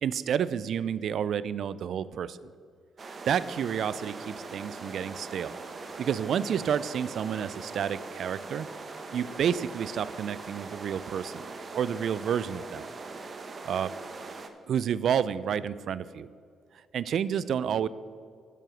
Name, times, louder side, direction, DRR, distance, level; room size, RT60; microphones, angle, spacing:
voice 1, 0.0-2.5 3.0-5.6 6.0-8.7 9.1-12.9 13.6-13.9 14.7-16.3 16.9-17.9, right 8 dB, 65° right, 17 dB, 0.3 m, -30 dB
sound 1, 3.0-14.5, right 3 dB, 45° right, 0.9 m, -41 dB
7.8 x 7.6 x 5.9 m, 2.2 s
hypercardioid pair, 50°, 0 cm